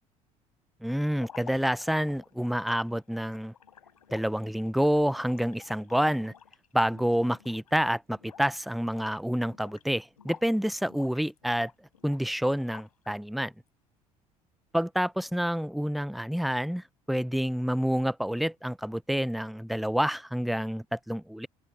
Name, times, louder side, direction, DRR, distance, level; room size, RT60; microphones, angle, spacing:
voice 1, 0.8-3.5 4.1-6.3 6.7-11.7 12.0-13.5 14.7-21.5, equal, ahead, 0.9 m, -28 dB
sound 1, 1.1-7.8 8.1-8.6 8.9-10.5 10.9-13.1, left 7 dB, 80° left, 4.6 m, -52 dB
open air
figure-of-eight pair, 60°, 19 cm